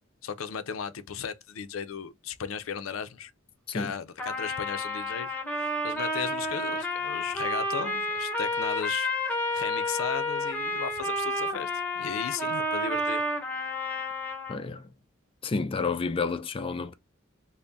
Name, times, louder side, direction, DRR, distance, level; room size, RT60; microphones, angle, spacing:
voice 1, 0.2-3.3 3.7-5.3 5.6-11.7 12.0-13.2, left 6 dB, 85° left, 0.5 m, -36 dB
Trumpet, 4.2-14.6, left 1 dB, 10° left, 0.8 m, -30 dB
voice 2, 14.5-14.9 15.4-16.9, left 4 dB, 25° left, 0.3 m, -30 dB
3.4 x 2.1 x 3.9 m
head